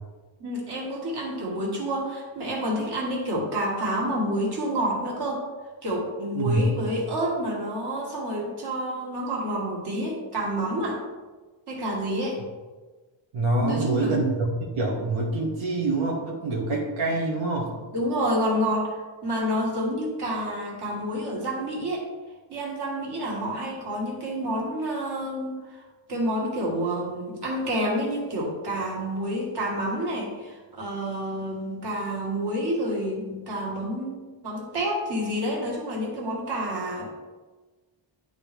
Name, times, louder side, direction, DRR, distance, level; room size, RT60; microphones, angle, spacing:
voice 1, 0.4-5.4 5.8-11.0 11.7-12.4 13.6-14.2 17.9-22.0 22.5-37.1, equal, 55° right, -2 dB, 1.9 m, -29 dB
voice 2, 6.3-6.8 13.3-17.8, right 2 dB, 85° right, -3 dB, 1.4 m, -25 dB
11.0 x 3.9 x 3.4 m, 1.3 s
wide cardioid pair, 165°, 47 cm